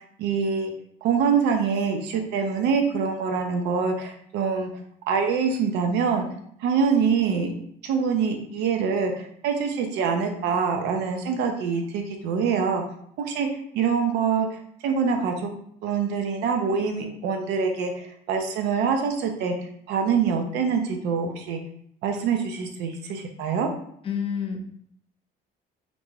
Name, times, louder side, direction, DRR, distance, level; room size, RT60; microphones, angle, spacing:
voice 1, 0.2-0.7 1.0-4.7 5.1-6.3 6.6-7.5 7.8-12.8 13.2-13.5 13.7-15.5 15.8-21.6 22.0-23.7, right 6 dB, 80° right, 3 dB, 0.4 m, -25 dB
voice 2, 24.0-24.6, left 7 dB, 35° left, 4 dB, 0.4 m, -28 dB
2.5 x 2.2 x 3.1 m, 0.66 s
cardioid pair, 110°, 17 cm